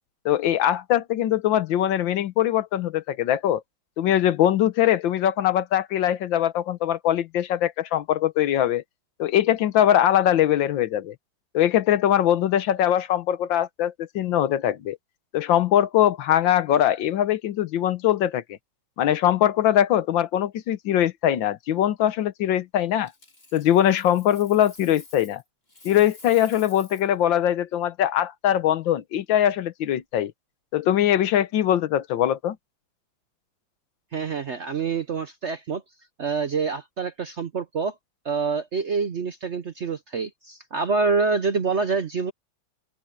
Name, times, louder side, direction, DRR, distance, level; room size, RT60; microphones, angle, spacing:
voice 1, 0.2-3.6 4.0-8.8 9.2-11.1 11.5-15.0 15.3-18.6 19.0-23.1 23.5-25.4 25.8-30.3 30.7-32.6, left 11 dB, 80° left, 1.6 m, -22 dB
Coin (dropping), 23.0-25.4 25.7-27.1 30.0-30.2, left 2 dB, 30° left, 3.5 m, -49 dB
voice 2, 34.1-35.8 36.2-37.9 38.2-42.3, right 4 dB, 55° right, 0.8 m, -26 dB
open air
omnidirectional pair, 2.1 m